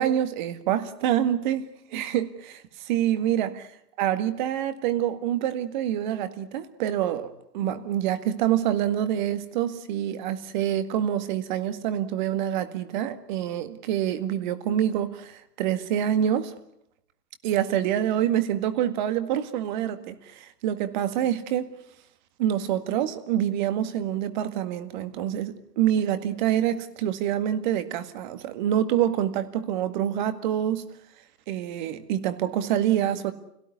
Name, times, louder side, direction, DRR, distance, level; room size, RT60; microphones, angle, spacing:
voice 1, 0.0-2.6 2.9-3.5 4.0-16.5 17.4-21.7 22.4-30.9 31.5-33.3, right 11 dB, 30° right, 1.9 m, -26 dB
28.5 x 17.5 x 9.6 m
figure-of-eight pair, 130°, 47 cm